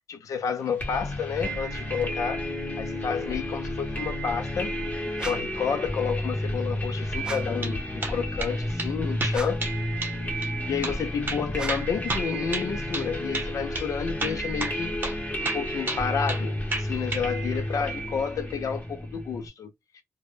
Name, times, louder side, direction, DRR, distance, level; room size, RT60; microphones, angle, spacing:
voice 1, 0.1-2.5 2.8-4.8 5.2-9.6 10.3-14.9 15.4-20.0, left 6 dB, 85° left, 0.4 m, -30 dB
sound 1, 0.8-19.5, equal, 30° left, 0.8 m, -31 dB
sound 2, 5.2-5.6 7.2-7.7 9.3-9.8 11.5-12.0, right 2 dB, 15° right, 0.5 m, -39 dB
sound 3, 7.3-7.7 8.0-8.5 8.8-8.9 9.2-9.8 10.0-10.2 10.4-10.5 10.8-11.0 11.3-13.1 13.3-13.5 13.7-13.9 14.2-15.2 15.4-16.4 16.7-17.3, right 2 dB, 40° right, 0.8 m, -31 dB
2.1 x 2.0 x 3.1 m
wide cardioid pair, 105°, 6 cm